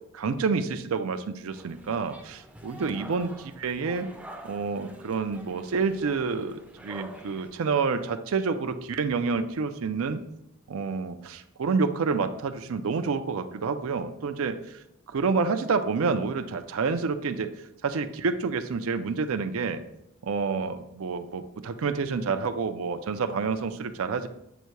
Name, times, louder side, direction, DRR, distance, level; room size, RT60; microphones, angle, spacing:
voice 1, 0.1-4.1 4.4-10.2 10.7-14.6 15.1-17.5 17.8-19.8 20.2-24.3, right 5 dB, 70° right, 9 dB, 0.4 m, -28 dB
sound 1, 1.5-7.5, equal, 5° right, 0.5 m, -47 dB
7.9 x 2.7 x 4.5 m, 0.82 s
head